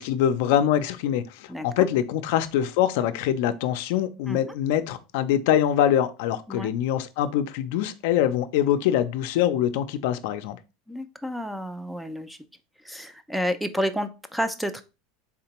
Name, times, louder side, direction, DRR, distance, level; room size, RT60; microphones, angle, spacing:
voice 1, 0.0-10.6, left 10 dB, 70° left, 0.4 m, -24 dB
voice 2, 1.5-1.9 4.3-4.4 6.5-6.7 10.9-12.4 12.8-14.8, equal, ahead, 0.3 m, -30 dB
3.6 x 3.3 x 2.9 m
supercardioid pair, 140°, 0 cm